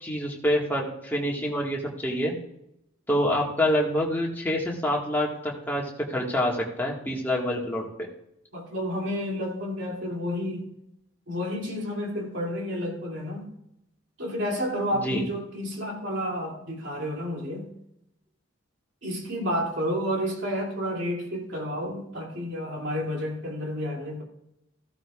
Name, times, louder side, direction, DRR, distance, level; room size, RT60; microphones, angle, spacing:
voice 1, 0.0-2.3 3.1-7.8 14.9-15.2, equal, 10° left, -3 dB, 1.7 m, -26 dB
voice 2, 8.5-10.7 11.3-13.5 14.2-17.7 19.0-24.2, equal, 60° right, -2 dB, 2.7 m, -30 dB
14.5 x 11.5 x 2.4 m, 0.81 s
head